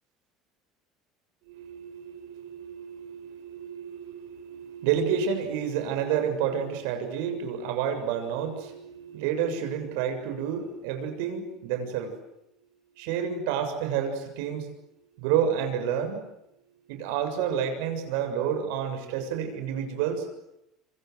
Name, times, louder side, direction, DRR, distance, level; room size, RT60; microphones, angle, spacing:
voice 1, 1.5-12.2 13.0-14.7 15.2-16.2 16.9-20.3, right 8 dB, 80° right, 7 dB, 7.1 m, -29 dB
27.0 x 27.0 x 8.0 m, 0.83 s
cardioid pair, 140°, 0 cm